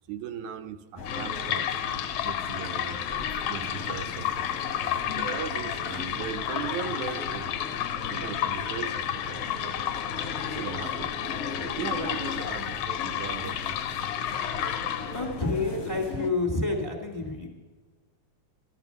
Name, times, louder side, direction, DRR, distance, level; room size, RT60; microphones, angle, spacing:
voice 1, 0.1-1.7 2.2-3.1 3.5-7.6 8.0-9.9 10.5-13.9 14.7-15.1, right 8 dB, 85° right, 8 dB, 2.2 m, -39 dB
sound 1, 1.0-15.4, left 10 dB, 70° left, 1.5 m, -32 dB
sound 2, 1.0-16.3, left 4 dB, 45° left, 1.4 m, -38 dB
voice 2, 15.1-17.5, left 3 dB, 10° left, 3 dB, 1.9 m, -29 dB
15.0 x 12.5 x 6.9 m, 1.4 s
omnidirectional pair, 3.4 m